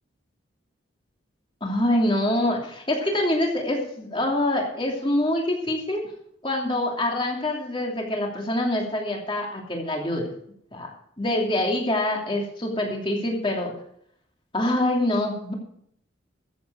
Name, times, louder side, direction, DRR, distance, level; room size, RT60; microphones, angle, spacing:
voice 1, 1.6-6.0 6.4-10.3 10.7-10.9 11.2-13.7 14.5-15.5, left 1 dB, 25° left, 0 dB, 2.8 m, -25 dB
14.5 x 8.0 x 6.2 m, 0.69 s
head